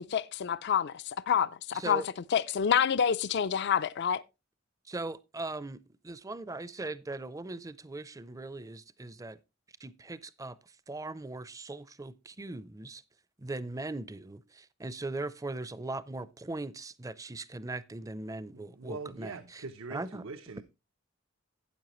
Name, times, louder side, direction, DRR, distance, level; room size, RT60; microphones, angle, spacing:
voice 1, 0.0-2.0 2.3-4.2, left 7 dB, 55° left, 0.4 m, -28 dB
voice 2, 4.9-9.4 9.8-10.6 10.9-13.0 13.4-19.6 19.9-20.2, right 2 dB, 15° right, 0.5 m, -39 dB
voice 3, 18.5-20.6, right 4 dB, 80° right, 0.8 m, -42 dB
12.5 x 9.0 x 3.0 m
head